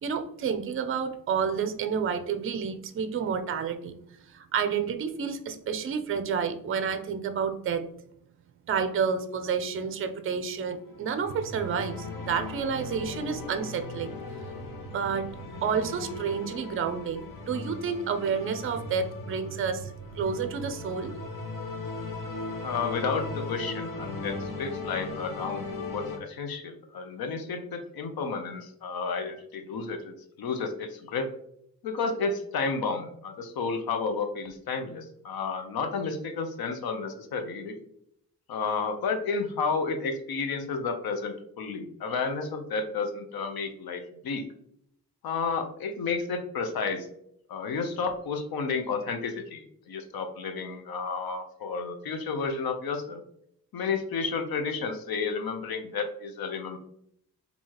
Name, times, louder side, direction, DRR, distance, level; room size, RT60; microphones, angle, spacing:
voice 1, 0.0-3.9 4.3-7.8 8.7-14.1 14.6-15.3 15.6-21.1, right 6 dB, 40° right, 8 dB, 0.4 m, -30 dB
sound 1, 10.8-26.2, left 3 dB, 65° left, 1.1 m, -38 dB
voice 2, 22.6-31.3 31.8-37.8 38.5-44.4 45.2-47.1 47.5-53.2 53.7-56.8, left 4 dB, 85° left, 6 dB, 0.8 m, -31 dB
4.6 x 2.8 x 2.9 m, 0.72 s
wide cardioid pair, 145°, 35 cm